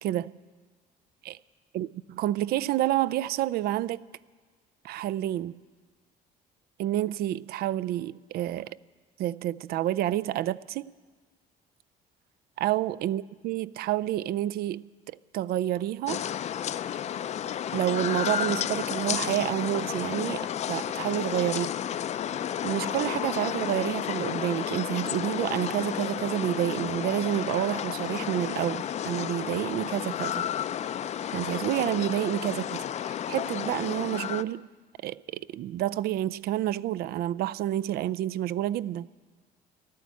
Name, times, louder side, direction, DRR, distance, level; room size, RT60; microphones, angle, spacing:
voice 1, 0.0-0.4 1.2-1.4 1.7-4.0 4.8-5.6 6.8-8.8 9.2-10.8 12.6-16.2 17.7-21.8 22.6-30.4 31.3-34.7 35.0-39.1, right 13 dB, 65° right, 0.4 m, -29 dB
Boats stranded on jetty, 16.1-34.4, left 10 dB, 40° left, 0.4 m, -32 dB
14.0 x 12.0 x 8.3 m
cardioid pair, 110°, 17 cm